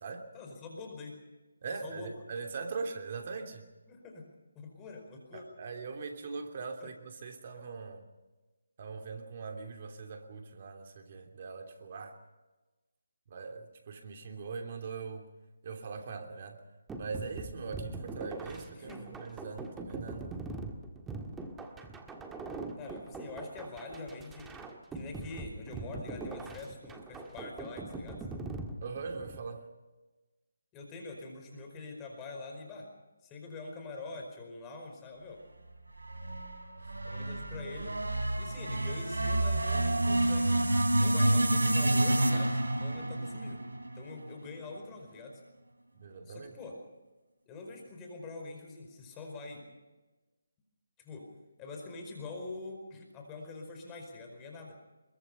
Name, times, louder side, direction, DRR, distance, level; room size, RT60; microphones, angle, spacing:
voice 1, 0.3-1.2 1.8-2.1 3.9-4.3 4.5-5.4 6.8-6.9 18.7-19.2 22.7-24.6 24.9-28.3 30.7-32.9 33.2-35.4 37.0-38.0 38.4-40.6 41.0-43.6 43.9-45.4 46.2-46.8 47.5-49.7 51.0-51.3 51.6-54.8, left 3 dB, 15° left, 4.9 m, -45 dB
voice 2, 1.6-3.6 5.3-8.1 8.8-12.2 13.3-15.3 15.6-16.6 17.0-20.3 28.8-29.7 45.9-46.5, right 4 dB, 40° right, 3.0 m, -41 dB
sound 1, 16.9-29.5, right 3 dB, 10° right, 1.7 m, -42 dB
sound 2, 36.0-44.3, right 1 dB, 80° right, 3.9 m, -29 dB
23.5 x 22.5 x 5.6 m
figure-of-eight pair, 155°, 0 cm